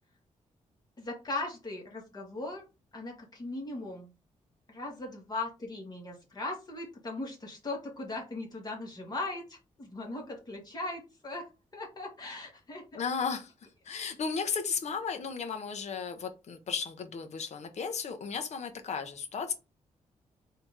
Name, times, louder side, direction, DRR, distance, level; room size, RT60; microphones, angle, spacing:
voice 1, 1.0-2.6 2.9-4.1 4.7-13.0, left 2 dB, 30° left, 0 dB, 1.9 m, -39 dB
voice 2, 12.9-13.5 13.9-19.5, left 6 dB, 60° left, 7 dB, 0.8 m, -34 dB
4.3 x 2.9 x 3.6 m, 0.28 s
wide cardioid pair, 130°, 13 cm